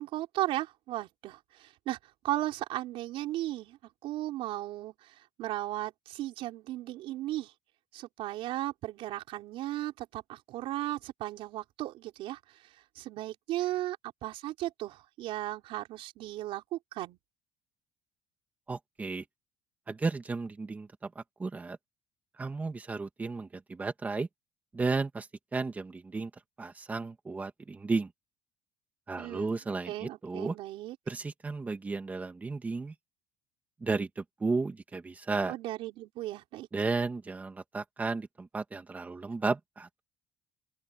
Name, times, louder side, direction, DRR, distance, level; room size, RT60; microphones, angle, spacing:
voice 1, 0.0-2.0 2.2-3.8 4.0-7.5 7.9-12.6 12.9-17.2 29.2-29.5 29.9-31.0 35.4-36.7, right 15 dB, 60° right, 4.8 m, -36 dB
voice 2, 18.7-19.2 19.9-21.8 22.4-24.3 24.7-26.3 26.6-28.1 29.1-30.6 31.1-32.9 33.8-35.5 36.7-40.0, right 3 dB, 15° right, 2.3 m, -34 dB
open air
cardioid pair, 155°, 11 cm